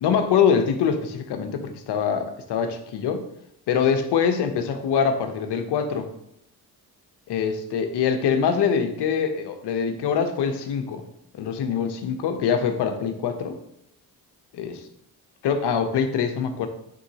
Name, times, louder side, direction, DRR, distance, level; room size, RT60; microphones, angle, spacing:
voice 1, 0.0-3.2 3.7-6.1 7.3-11.0 11.3-13.6 14.5-14.8 15.4-16.7, left 7 dB, 75° left, 6 dB, 0.9 m, -24 dB
9.2 x 3.9 x 2.9 m, 0.76 s
cardioid pair, 75°, 40 cm